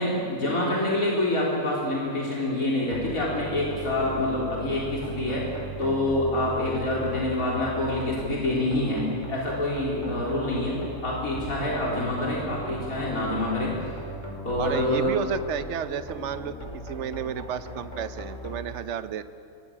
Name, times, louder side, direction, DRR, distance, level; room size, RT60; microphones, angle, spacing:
voice 1, 0.0-5.5 5.8-13.8 14.4-15.1, left 1 dB, 80° left, -4 dB, 4.4 m, -26 dB
sound 1, 2.9-18.5, right 1 dB, 20° left, 4.7 m, -38 dB
voice 2, 14.6-16.6 16.8-19.2, right 8 dB, 60° right, 11 dB, 1.1 m, -32 dB
24.5 x 20.5 x 8.6 m, 2.4 s
omnidirectional pair, 1.5 m